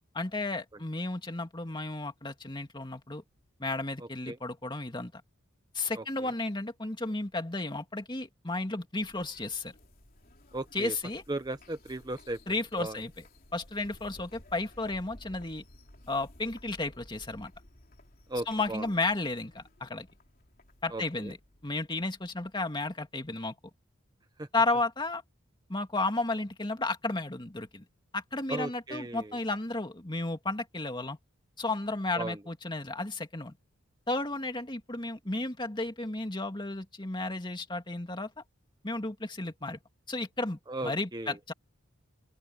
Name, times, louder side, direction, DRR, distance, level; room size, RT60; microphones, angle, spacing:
voice 1, 0.1-3.2 3.6-5.1 5.7-9.7 10.7-11.2 12.5-13.1 13.5-15.6 16.1-17.5 18.5-20.1 20.8-21.4 21.6-23.5 24.5-25.2 25.7-27.8 28.1-31.2 31.6-33.6 34.1-38.3 38.8-39.8 40.1-41.5, left 2 dB, 25° left, 2.3 m, -33 dB
voice 2, 5.9-6.3 10.5-10.9 11.3-13.0 18.3-18.9 20.9-21.3 24.4-24.5 28.5-29.4 32.1-32.4 40.7-41.4, right 2 dB, 20° right, 0.9 m, -37 dB
sound 1, 9.0-23.4, left 1 dB, 45° left, 3.4 m, -56 dB
open air
head